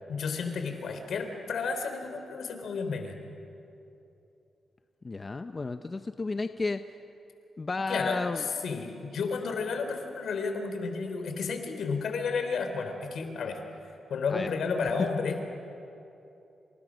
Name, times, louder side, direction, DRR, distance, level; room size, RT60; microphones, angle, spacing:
voice 1, 0.1-3.2 7.9-13.6 14.1-15.4, left 5 dB, 75° left, 6 dB, 3.6 m, -32 dB
voice 2, 5.0-6.8 7.6-8.4 14.3-14.5, left 3 dB, 30° left, 8 dB, 0.8 m, -32 dB
29.0 x 28.0 x 6.3 m, 2.8 s
cardioid pair, 95°, 0 cm